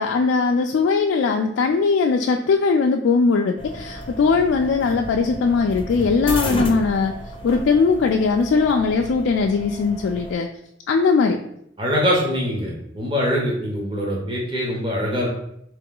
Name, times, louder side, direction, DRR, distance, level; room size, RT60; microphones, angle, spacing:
voice 1, 0.0-7.1 7.4-10.5 10.9-11.4, left 4 dB, 90° left, 2 dB, 0.3 m, -19 dB
sound 1, 3.6-10.3, left 1 dB, 30° left, 0.5 m, -33 dB
voice 2, 11.8-15.3, equal, 25° right, -2 dB, 0.8 m, -23 dB
3.8 x 3.0 x 3.8 m, 0.73 s
head